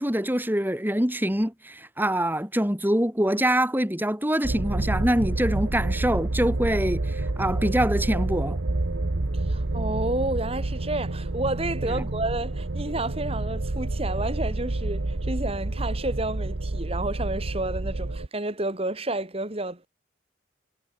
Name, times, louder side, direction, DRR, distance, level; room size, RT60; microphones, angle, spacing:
voice 1, 0.0-8.6, right 1 dB, 10° right, 3.1 m, -25 dB
sound 1, 4.4-18.3, right 2 dB, 90° right, 1.2 m, -28 dB
voice 2, 9.5-19.9, right 2 dB, 30° right, 2.3 m, -30 dB
head